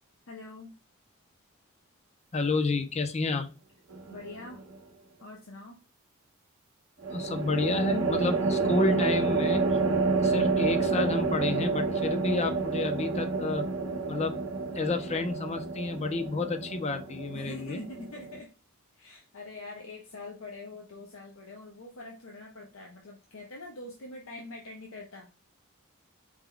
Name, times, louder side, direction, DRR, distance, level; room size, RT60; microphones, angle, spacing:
voice 1, 0.3-0.7 4.1-4.6 5.2-5.8 17.3-18.5 19.0-25.3, left 2 dB, 85° left, 0.8 m, -44 dB
voice 2, 2.3-3.5 7.1-9.7 10.2-13.6 14.1-14.4 14.7-17.8, left 3 dB, 30° left, 0.5 m, -30 dB
sound 1, 3.9-4.5 7.0-18.4, right 3 dB, 80° right, 0.6 m, -29 dB
4.6 x 2.2 x 3.7 m
head